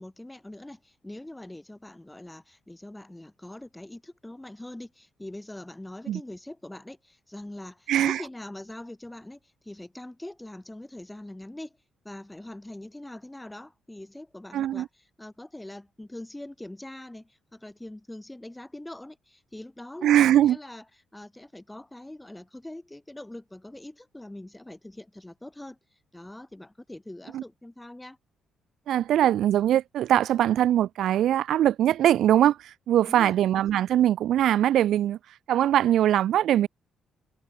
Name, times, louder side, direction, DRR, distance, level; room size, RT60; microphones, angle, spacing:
voice 1, 0.0-11.8 12.0-20.8 21.1-25.8 26.1-28.2 33.0-33.4, left 1 dB, 10° left, 3.5 m, -43 dB
voice 2, 7.9-8.2 14.5-14.9 20.0-20.6 27.3-27.4 28.9-35.2 35.5-36.7, right 11 dB, 75° right, 0.4 m, -22 dB
cardioid pair, 90°, 0 cm